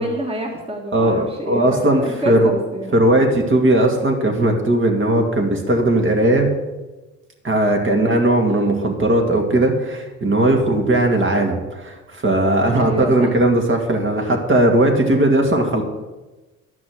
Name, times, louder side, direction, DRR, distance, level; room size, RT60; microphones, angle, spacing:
voice 1, 0.0-3.0 12.7-13.3, right 1 dB, 20° right, 1 dB, 1.9 m, -27 dB
voice 2, 0.9-2.5 2.9-6.5 7.4-15.8, right 1 dB, 40° right, 2 dB, 2.2 m, -17 dB
11.0 x 6.1 x 7.5 m, 1.2 s
cardioid pair, 90°, 30 cm